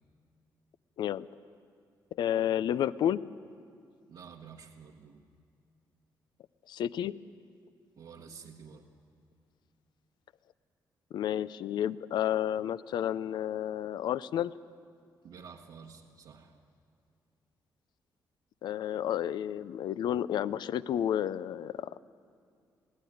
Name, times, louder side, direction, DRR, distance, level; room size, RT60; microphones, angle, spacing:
voice 1, 2.1-3.2 6.7-7.2 11.1-14.5 18.6-22.0, left 10 dB, 80° left, 17 dB, 0.5 m, -31 dB
voice 2, 4.1-5.2 8.0-8.8 15.2-16.6, right 6 dB, 80° right, -2 dB, 1.2 m, -50 dB
22.0 x 16.0 x 9.3 m, 2.3 s
cardioid pair, 80°, 7 cm